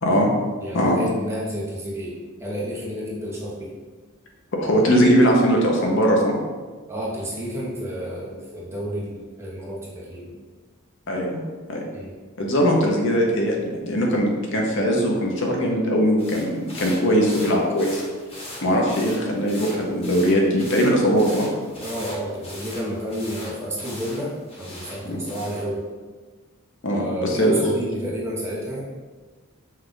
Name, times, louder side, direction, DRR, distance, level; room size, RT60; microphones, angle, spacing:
voice 1, 0.6-3.7 6.9-10.3 11.9-12.1 21.8-24.3 24.6-25.8 26.9-28.8, equal, 15° right, -6 dB, 0.9 m, -30 dB
voice 2, 4.5-6.4 11.1-11.4 11.7-11.8 12.4-18.0 18.6-21.5 25.1-25.2 26.8-27.6, equal, 60° left, 0 dB, 0.8 m, -20 dB
sound 1, 16.2-25.7, left 1 dB, 30° left, 1.2 m, -39 dB
5.5 x 2.4 x 3.7 m, 1.4 s
head